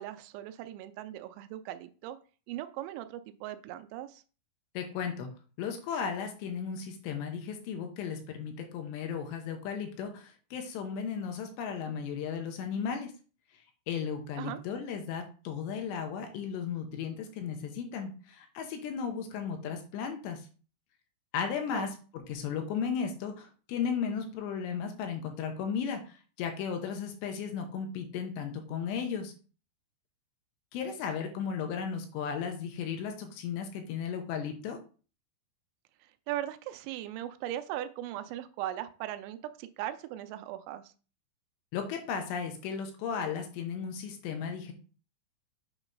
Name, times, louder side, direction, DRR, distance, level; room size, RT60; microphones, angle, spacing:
voice 1, 0.0-2.2 2.5-4.2 14.4-14.6 21.7-21.9 36.3-40.8, right 13 dB, 85° right, 11 dB, 3.0 m, -38 dB
voice 2, 4.7-5.3 5.6-13.1 13.9-20.4 21.3-21.9 22.1-29.3 30.7-34.8 41.7-44.7, left 7 dB, 80° left, 5 dB, 3.1 m, -35 dB
8.1 x 3.0 x 5.2 m, 0.37 s
omnidirectional pair, 5.2 m